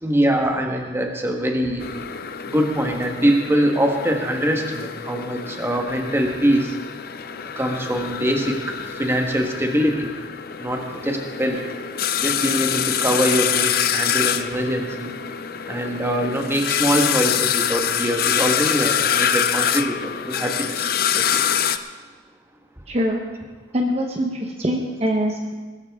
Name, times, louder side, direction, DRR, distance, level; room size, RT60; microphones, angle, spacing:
voice 1, 0.0-1.9 2.4-6.7 7.5-10.1 10.6-11.6 12.2-15.1 15.7-21.3, equal, 15° right, 2 dB, 1.4 m, -23 dB
sound 1, 1.8-21.8, left 9 dB, 55° left, 0.6 m, -25 dB
voice 2, 22.9-23.2 23.7-25.5, equal, 35° right, 2 dB, 1.0 m, -23 dB
20.0 x 13.5 x 3.6 m, 1.4 s
head